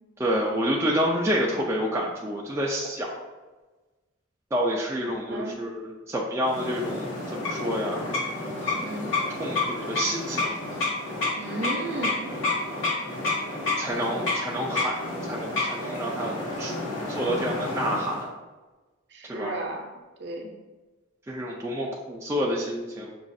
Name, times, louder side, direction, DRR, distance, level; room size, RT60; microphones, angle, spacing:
voice 1, 0.2-3.2 4.5-7.0 7.3-8.0 9.4-10.6 13.8-15.0 15.3-16.7 17.1-18.3 19.2-19.6 21.3-23.1, equal, 15° right, -3 dB, 0.3 m, -28 dB
voice 2, 5.0-5.6 8.7-9.1 11.4-12.3 19.1-19.9 20.2-20.5, right 2 dB, 55° right, 1 dB, 0.6 m, -34 dB
sound 1, 6.4-18.3, left 2 dB, 75° left, 1.3 m, -30 dB
6.1 x 2.4 x 2.6 m, 1.2 s
head